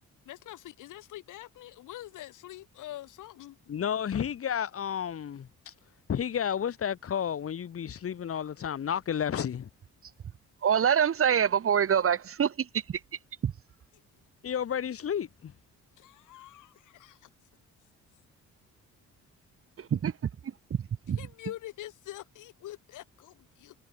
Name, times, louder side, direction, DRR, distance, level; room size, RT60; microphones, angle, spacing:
voice 1, 0.3-3.6 16.0-17.3 21.1-23.8, left 15 dB, 85° left, 3.7 m, -45 dB
voice 2, 3.7-5.7 6.1-9.7 14.4-15.5, left 8 dB, 50° left, 1.8 m, -31 dB
voice 3, 10.6-13.0 13.4-13.5 19.8-20.1 21.1-21.2, right 8 dB, 45° right, 1.5 m, -25 dB
cardioid pair, 90°, 30 cm